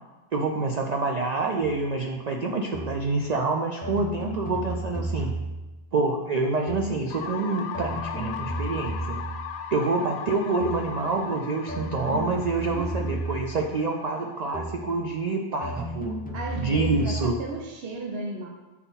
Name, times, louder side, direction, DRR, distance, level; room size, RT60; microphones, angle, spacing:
voice 1, 0.3-5.3 5.9-9.2 9.7-16.2 16.6-17.4, right 3 dB, 80° right, 2 dB, 0.3 m, -27 dB
sound 1, 1.6-1.8 2.7-3.1 3.8-5.7 6.7-7.1 7.7-9.5 10.6-11.0 11.7-13.6 14.5-14.9 15.6-17.4, right 1 dB, 10° left, 0.5 m, -33 dB
sound 2, 7.1-15.0, left 7 dB, 65° left, 0.8 m, -38 dB
voice 2, 12.7-13.2 16.3-18.5, right 2 dB, 60° right, 1 dB, 0.8 m, -35 dB
7.4 x 4.0 x 4.0 m, 1.1 s
omnidirectional pair, 1.3 m